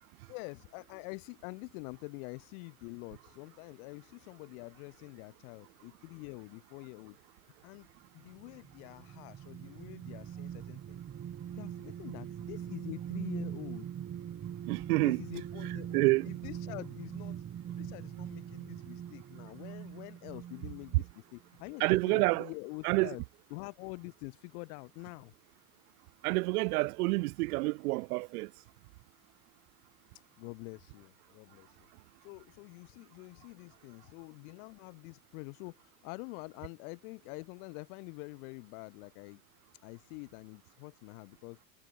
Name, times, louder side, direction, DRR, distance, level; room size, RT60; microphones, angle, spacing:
voice 1, 0.3-7.2 7.6-7.9 8.1-11.0 11.6-13.9 15.0-17.4 17.7-23.2 23.5-25.3 30.4-31.9 32.2-39.4 39.8-41.6, left 34 dB, 60° left, 2.6 m, -46 dB
sound 1, 8.2-21.1 21.6-21.7, right 9 dB, 25° right, 2.0 m, -42 dB
voice 2, 14.6-15.2 15.9-16.3 21.8-22.5 22.8-23.1 26.2-28.5, right 24 dB, 65° right, 0.8 m, -28 dB
hypercardioid pair, 105°, 50 cm